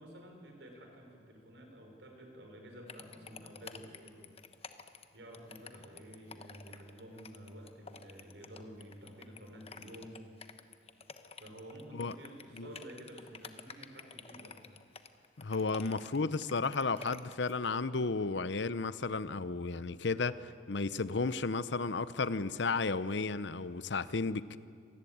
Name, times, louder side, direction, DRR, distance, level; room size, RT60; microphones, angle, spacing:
voice 1, 0.0-4.3 5.1-10.2 11.4-14.6 15.5-15.8, equal, 70° right, 5.2 m, -51 dB
sound 1, 2.9-17.5, left 5 dB, 35° left, 1.1 m, -50 dB
voice 2, 15.4-24.6, left 4 dB, 70° left, 0.8 m, -33 dB
26.5 x 19.0 x 8.7 m
head